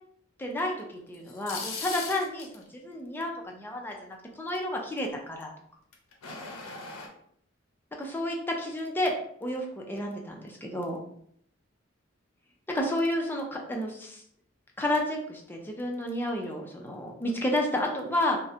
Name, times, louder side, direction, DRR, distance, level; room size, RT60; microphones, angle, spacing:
voice 1, 0.4-5.5 8.0-11.0 12.7-14.2 14.8-18.4, left 1 dB, 10° left, 0 dB, 0.4 m, -31 dB
sound 1, 1.1-2.6 5.9-7.1, left 4 dB, 90° left, 0.5 m, -38 dB
2.4 x 2.0 x 2.7 m, 0.68 s
head